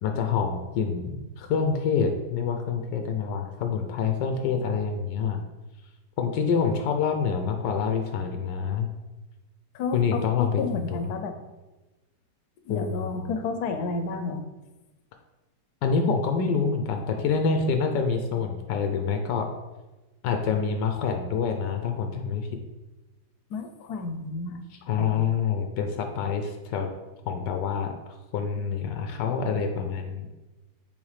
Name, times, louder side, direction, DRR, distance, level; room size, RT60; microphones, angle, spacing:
voice 1, 0.0-5.4 6.2-8.9 9.9-11.1 12.7-13.3 15.8-19.5 20.2-22.5 24.9-26.9 27.2-27.9 28.3-30.3, left 6 dB, 85° left, 5 dB, 1.3 m, -26 dB
voice 2, 9.7-11.3 12.7-14.4 23.5-24.6 25.0-25.3, left 4 dB, 70° left, 7 dB, 1.1 m, -31 dB
7.1 x 4.2 x 3.3 m, 1.1 s
omnidirectional pair, 1.8 m